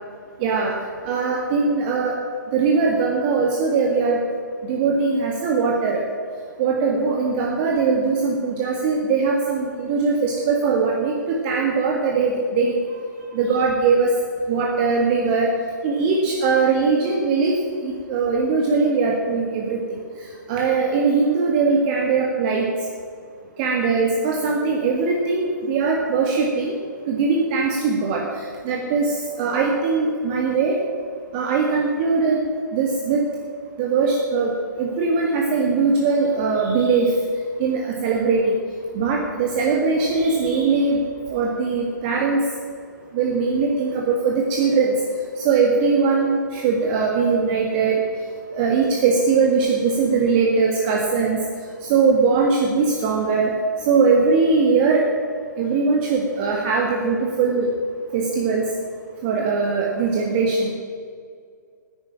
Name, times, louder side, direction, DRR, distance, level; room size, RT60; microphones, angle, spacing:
voice 1, 0.4-0.7 1.0-2.2 2.5-4.2 4.7-6.0 6.6-12.7 13.3-14.1 14.5-15.5 15.8-17.5 17.8-19.8 20.5-22.7 23.6-26.7 27.1-30.8 31.3-32.4 32.7-33.2 33.8-34.5 34.8-37.1 37.6-38.5 38.9-41.0 41.3-42.4 43.1-44.9 45.4-48.0 48.5-51.4 51.8-53.5 53.9-55.0 55.6-57.7 58.1-58.6 59.2-60.7, right 4 dB, 30° right, 0 dB, 1.6 m, -20 dB
10.5 x 9.7 x 9.9 m, 2.1 s
figure-of-eight pair, 125°, 11 cm